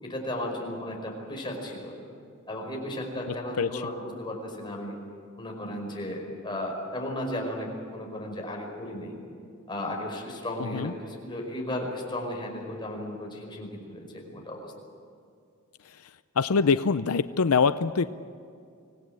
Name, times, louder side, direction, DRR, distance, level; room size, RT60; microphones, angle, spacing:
voice 1, 0.0-2.0 2.5-5.0 5.4-9.2 9.7-14.7, left 1 dB, 20° left, 0 dB, 5.0 m, -35 dB
voice 2, 3.3-3.8 10.6-10.9 15.8-18.1, left 5 dB, 85° left, 13 dB, 0.6 m, -25 dB
25.5 x 18.0 x 8.9 m, 2.4 s
head